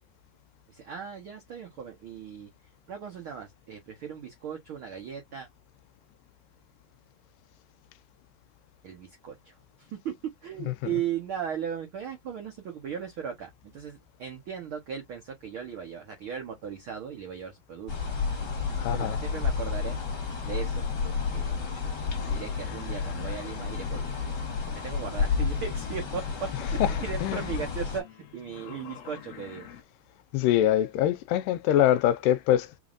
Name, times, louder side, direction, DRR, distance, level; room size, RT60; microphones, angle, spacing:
voice 1, 0.7-2.5 2.9-5.5 8.8-10.1 10.4-20.0 20.4-21.8 22.3-24.4 24.8-26.2 26.6-29.7, right 8 dB, 75° right, 1.2 m, -37 dB
voice 2, 10.6-11.0 18.8-19.2 26.5-27.5 30.3-32.7, left 12 dB, 80° left, 2.1 m, -25 dB
sound 1, 17.9-28.0, left 5 dB, 35° left, 1.9 m, -31 dB
sound 2, 19.7-29.8, left 11 dB, 65° left, 1.8 m, -47 dB
5.5 x 3.1 x 2.5 m
omnidirectional pair, 4.0 m